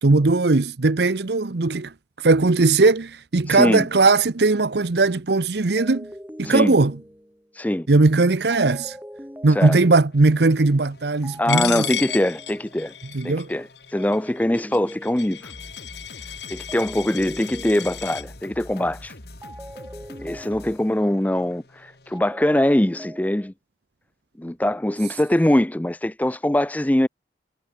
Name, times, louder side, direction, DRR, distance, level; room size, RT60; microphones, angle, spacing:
voice 1, 0.0-6.1 6.4-7.0 7.9-9.0 9.4-11.9 13.1-13.5, right 3 dB, 70° right, 0.8 m, -19 dB
voice 2, 3.5-3.9 6.4-6.8 7.6-7.9 9.6-9.8 11.4-12.9 13.2-15.5 16.5-19.1 20.2-23.5 24.4-27.1, left 1 dB, 10° left, 0.4 m, -22 dB
sound 1, 5.8-7.5 8.5-10.2 11.2-12.9 14.0-15.6 16.7-18.4 19.4-21.1 22.1-23.5, equal, 10° right, 5.7 m, -42 dB
sound 2, 10.1-22.2, left 1 dB, 65° left, 3.3 m, -46 dB
Coin (dropping), 11.5-18.2, left 10 dB, 80° left, 2.3 m, -33 dB
head